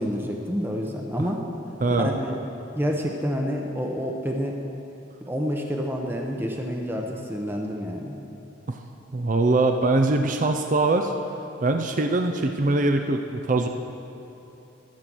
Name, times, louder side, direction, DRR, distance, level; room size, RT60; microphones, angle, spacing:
voice 1, 0.0-1.4 2.0-2.4 2.7-4.6 5.3-8.2, equal, 10° right, 1 dB, 0.8 m, -28 dB
voice 2, 1.8-2.1 8.7-8.8 9.1-11.1 11.6-13.7, right 2 dB, 40° right, 5 dB, 0.5 m, -22 dB
13.5 x 8.4 x 6.1 m, 2.9 s
head